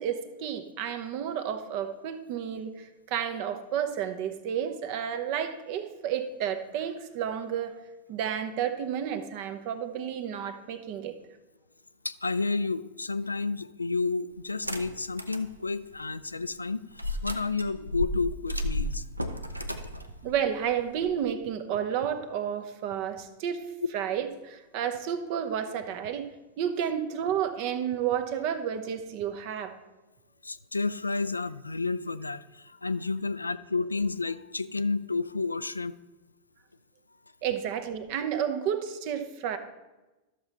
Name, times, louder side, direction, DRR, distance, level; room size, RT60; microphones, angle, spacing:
voice 1, 0.0-7.7 8.1-11.1 20.2-23.6 23.9-26.3 26.6-29.8 37.4-39.6, right 9 dB, 45° right, 9 dB, 0.9 m, -31 dB
voice 2, 12.0-16.8 17.2-19.0 30.4-35.9, left 3 dB, 80° left, 14 dB, 0.3 m, -31 dB
sound 1, 14.5-15.5 15.9-16.0 17.0-21.2, left 1 dB, 85° right, 0.6 m, -33 dB
12.5 x 6.8 x 4.2 m, 1.1 s
figure-of-eight pair, 90°, 0 cm